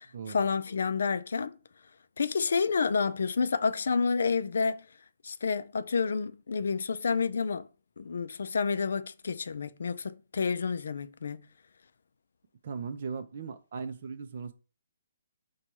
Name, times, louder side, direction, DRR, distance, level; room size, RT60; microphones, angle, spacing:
voice 1, 0.0-1.6 2.2-4.8 5.2-7.7 8.0-11.5, left 5 dB, 65° left, 0.3 m, -29 dB
voice 2, 12.6-14.5, right 5 dB, 40° right, 0.5 m, -38 dB
4.5 x 2.3 x 4.0 m
hypercardioid pair, 175°, 0 cm